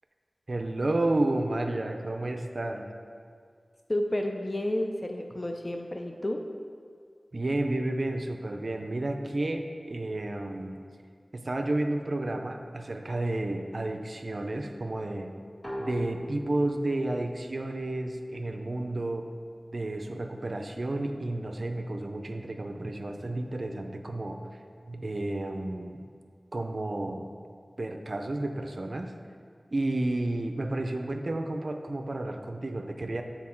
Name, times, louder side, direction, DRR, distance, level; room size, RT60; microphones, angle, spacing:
voice 1, 0.5-2.9 7.3-10.8 11.3-15.3 15.8-19.3 19.7-24.4 24.9-26.0 26.5-27.3 27.8-29.1 29.7-33.2, right 2 dB, 60° right, 5 dB, 0.4 m, -31 dB
voice 2, 3.9-6.4, left 1 dB, 40° left, 4 dB, 0.4 m, -31 dB
sound 1, 15.6-19.1, equal, 10° left, 1.4 m, -42 dB
6.3 x 3.9 x 4.4 m, 2.1 s
wide cardioid pair, 45°, 0 cm